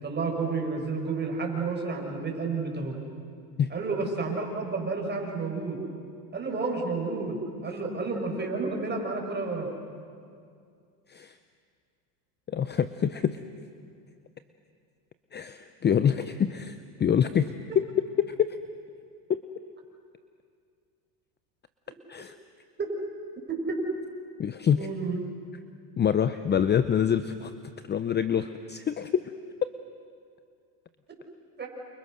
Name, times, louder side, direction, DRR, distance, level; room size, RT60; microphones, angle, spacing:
voice 1, 0.0-2.9 3.7-5.8 6.3-9.7 22.8-22.9 23.5-23.8 24.8-25.2 31.6-31.7, right 4 dB, 20° right, 1 dB, 6.2 m, -30 dB
voice 2, 12.5-13.4 15.3-17.9 18.2-18.6 19.3-19.4 22.1-22.3 24.4-24.9 26.0-27.5 27.9-29.2, left 8 dB, 20° left, 11 dB, 0.7 m, -26 dB
29.0 x 29.0 x 6.5 m, 2.3 s
supercardioid pair, 105°, 49 cm